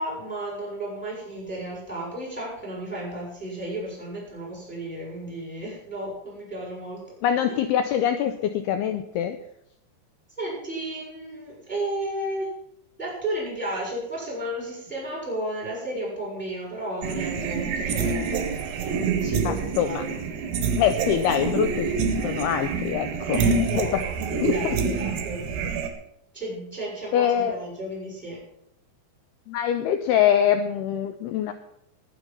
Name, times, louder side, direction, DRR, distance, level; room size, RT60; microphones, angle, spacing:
voice 1, 0.0-7.0 7.5-7.6 10.4-12.5 13.0-18.5 19.2-20.1 23.2-25.7 26.3-28.4, right 1 dB, ahead, -4 dB, 6.2 m, -33 dB
voice 2, 7.2-9.4 19.5-20.0 20.8-21.9 22.2-24.0 24.4-24.8 27.1-27.6 29.5-31.5, left 9 dB, 85° left, 8 dB, 2.3 m, -24 dB
sound 1, 17.0-25.9, right 5 dB, 70° right, 3.5 m, -27 dB
20.5 x 7.2 x 5.5 m, 0.75 s
omnidirectional pair, 5.4 m